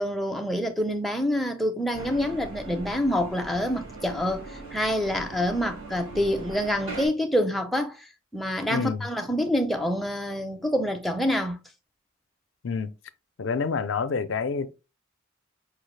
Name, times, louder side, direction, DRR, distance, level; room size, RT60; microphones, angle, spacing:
voice 1, 0.0-8.1 8.3-11.6, equal, ahead, 0.5 m, -27 dB
sound 1, 1.9-7.1, right 2 dB, 80° right, 1.8 m, -40 dB
voice 2, 8.7-9.1 12.6-12.9 13.4-14.7, left 5 dB, 60° left, 0.4 m, -27 dB
4.9 x 2.4 x 3.1 m
head